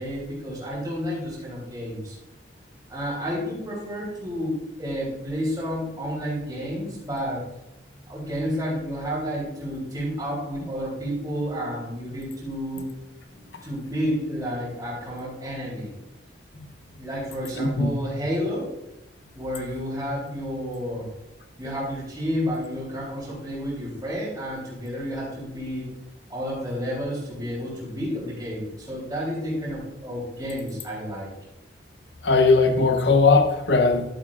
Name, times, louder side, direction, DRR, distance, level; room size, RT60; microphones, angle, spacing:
voice 1, 0.0-2.2 2.9-7.4 8.1-12.8 13.6-15.9 17.0-18.7 19.3-21.1 21.6-25.9 26.3-31.3, equal, 20° right, -7 dB, 3.4 m, -30 dB
voice 2, 17.6-17.9 32.2-34.0, left 3 dB, 80° left, 5 dB, 0.9 m, -18 dB
11.5 x 9.0 x 2.5 m, 0.92 s
head